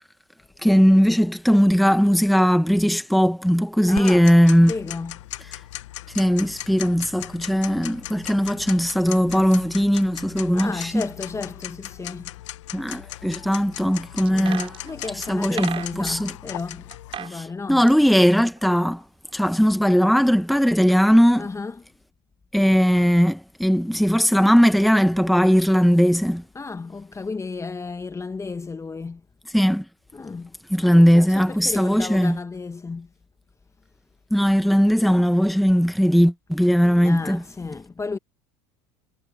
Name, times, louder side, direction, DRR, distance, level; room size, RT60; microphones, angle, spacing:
voice 1, 0.6-4.7 6.1-11.0 12.7-14.7 15.2-16.3 17.3-19.0 19.3-21.5 22.5-26.4 29.5-29.8 30.7-32.4 34.3-37.4, equal, ahead, 1.5 m, -19 dB
Tick-tock, 3.9-17.2, left 16 dB, 80° left, 1.3 m, -38 dB
voice 2, 3.9-4.3 4.7-5.2 10.5-12.3 14.3-16.9 17.2-17.8 21.4-21.7 26.5-29.2 30.1-30.5 30.8-33.1 36.8-38.2, left 4 dB, 20° left, 1.6 m, -33 dB
sound 1, 14.3-16.3 16.9-17.4 17.6-19.0 19.3-19.4, right 9 dB, 40° right, 3.5 m, -36 dB
hypercardioid pair, 80°, 15 cm